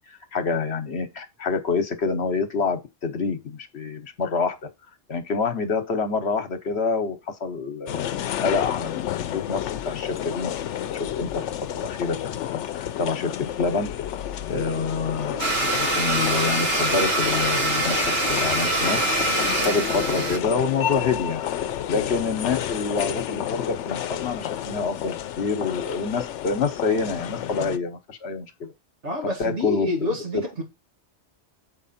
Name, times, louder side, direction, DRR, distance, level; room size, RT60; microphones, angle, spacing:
voice 1, 0.0-4.6 5.1-8.0 8.4-9.6 9.8-13.9 14.5-19.1 19.6-21.4 21.9-28.7 29.4-30.4, left 4 dB, 70° left, 1.3 m, -27 dB
sound 1, 7.9-27.8, left 11 dB, 85° left, 0.9 m, -31 dB
Domestic sounds home sounds, 15.4-20.4, right 2 dB, 60° right, 1.5 m, -24 dB
voice 2, 29.0-30.6, left 2 dB, 85° right, 2.5 m, -28 dB
7.3 x 4.9 x 4.2 m
omnidirectional pair, 1.2 m